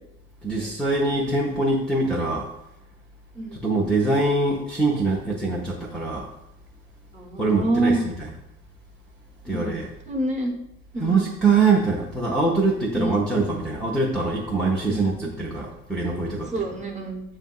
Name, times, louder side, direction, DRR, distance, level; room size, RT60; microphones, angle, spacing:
voice 1, 0.4-2.5 3.6-6.3 7.4-7.9 9.4-9.8 11.0-16.5, right 3 dB, ahead, -2 dB, 0.7 m, -23 dB
voice 2, 3.3-3.7 7.1-8.0 9.5-9.8 10.1-10.5 10.9-11.3 12.9-13.3 14.9-15.3 16.5-17.2, right 2 dB, 15° right, 0 dB, 1.0 m, -27 dB
7.3 x 2.6 x 2.3 m, 0.86 s
figure-of-eight pair, 50°, 41 cm